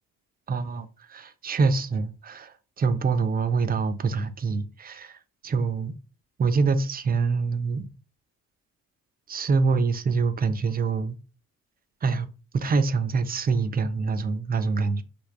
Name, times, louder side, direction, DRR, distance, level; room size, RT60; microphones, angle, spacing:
voice 1, 0.5-5.2 5.4-6.0 6.4-7.9 9.3-11.2 12.0-12.3 12.5-15.0, right 4 dB, 25° right, 0.5 m, -25 dB
3.3 x 2.5 x 2.5 m
hypercardioid pair, 45°, 39 cm